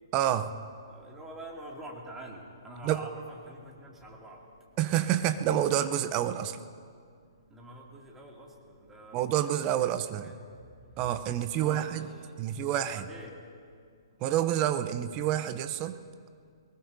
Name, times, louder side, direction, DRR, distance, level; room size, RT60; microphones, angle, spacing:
voice 1, 0.1-0.5 2.8-3.0 4.8-6.6 9.1-10.3 11.0-12.1 12.4-13.1 14.2-16.0, right 11 dB, 30° right, 11 dB, 0.7 m, -28 dB
voice 2, 0.9-4.4 7.5-8.5 8.9-9.4 9.8-9.9 10.2-10.4 11.5-11.9 12.2-12.3 12.8-13.3, right 1 dB, 10° right, -2 dB, 2.7 m, -45 dB
22.5 x 20.0 x 2.8 m, 2.2 s
hypercardioid pair, 130°, 2 cm